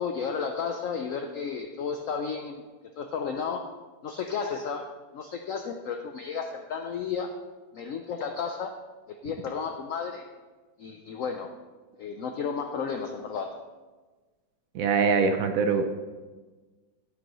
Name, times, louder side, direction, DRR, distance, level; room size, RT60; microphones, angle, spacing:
voice 1, 0.0-2.6 3.0-3.7 4.0-7.3 7.7-8.7 9.1-10.3 10.8-11.5 12.0-13.6, left 6 dB, 85° left, 5 dB, 0.7 m, -33 dB
voice 2, 14.7-15.9, right 5 dB, 70° right, 7 dB, 0.8 m, -23 dB
9.3 x 8.7 x 3.0 m, 1.3 s
omnidirectional pair, 2.0 m